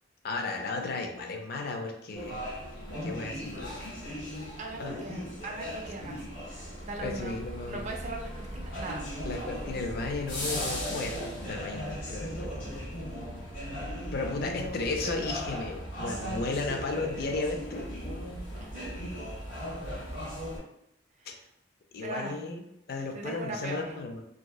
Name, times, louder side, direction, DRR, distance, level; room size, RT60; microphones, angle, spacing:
voice 1, 0.2-2.4 3.0-3.7 4.8-5.0 7.0-7.9 9.2-12.9 14.1-17.9 21.3-21.4 21.9-24.2, left 3 dB, 55° left, 3 dB, 0.4 m, -34 dB
sound 1, 2.1-20.6, equal, 85° left, 1.4 m, -37 dB
voice 2, 4.6-7.4 7.7-9.1 13.8-13.9 18.6-18.9 21.2-21.4 22.0-22.4 23.1-23.9, right 2 dB, 40° right, 1 dB, 0.4 m, -40 dB
2.7 x 2.0 x 2.2 m, 0.79 s
head